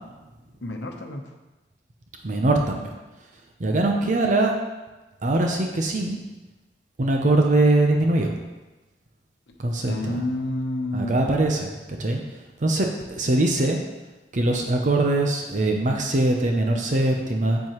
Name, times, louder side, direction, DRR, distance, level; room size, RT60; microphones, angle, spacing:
voice 1, 0.6-1.2 9.5-9.6 9.8-11.3, left 1 dB, 85° left, 3 dB, 0.9 m, -29 dB
voice 2, 2.2-2.9 3.6-4.5 5.2-6.2 7.0-8.4 9.6-10.2 10.9-11.7 12.0-12.2 12.6-13.8 14.3-17.6, right 2 dB, 45° right, 2 dB, 0.7 m, -22 dB
7.6 x 7.6 x 3.1 m, 1.1 s
head